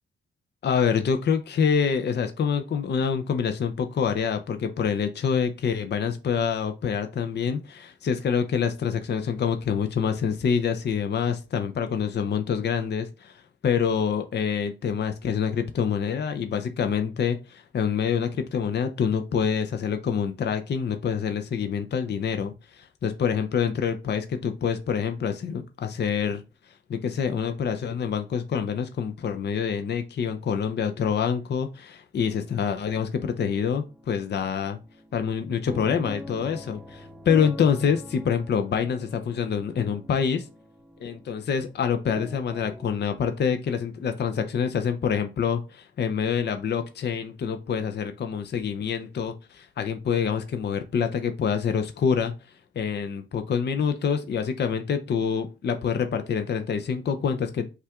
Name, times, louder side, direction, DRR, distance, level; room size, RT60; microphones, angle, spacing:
voice 1, 0.6-26.4 26.9-34.8 35.1-40.5 41.0-52.3 52.8-57.6, left 7 dB, 55° left, 7 dB, 0.5 m, -26 dB
sound 1, 32.2-42.9, left 1 dB, ahead, 0.6 m, -44 dB
5.5 x 2.4 x 3.4 m, 0.30 s
cardioid pair, 65°, 21 cm